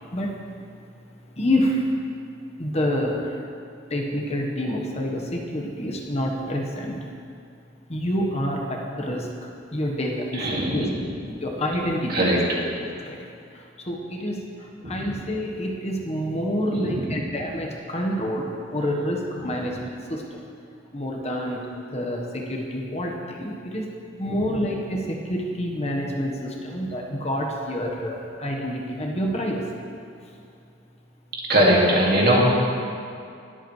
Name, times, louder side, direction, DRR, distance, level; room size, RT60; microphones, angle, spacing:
voice 1, 1.4-1.8 2.6-3.3 3.9-7.0 7.9-9.3 9.7-10.9 11.4-12.4 12.8-13.2 13.9-14.4 14.8-20.4 20.9-23.9 24.2-29.6, equal, 35° left, 0 dB, 1.2 m, -27 dB
voice 2, 10.3-11.1 12.1-12.4 14.8-15.2 16.7-17.2 19.4-19.7 24.3-24.6 31.5-32.6, right 1 dB, 55° right, -3 dB, 2.2 m, -22 dB
21.0 x 8.0 x 3.2 m, 2.4 s
head